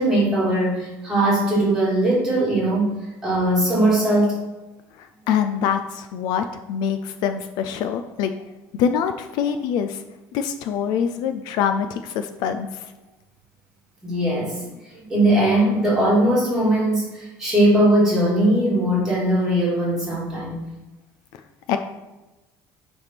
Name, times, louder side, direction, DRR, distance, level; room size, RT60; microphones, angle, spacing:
voice 1, 0.0-2.9 3.2-4.4 14.0-14.6 14.9-20.6, right 1 dB, 5° right, -7 dB, 2.7 m, -20 dB
voice 2, 5.0-8.3 8.7-10.0 10.3-12.8 21.7-21.8, left 8 dB, 65° left, 8 dB, 0.5 m, -24 dB
8.7 x 3.6 x 5.9 m, 1.1 s
cardioid pair, 155°, 8 cm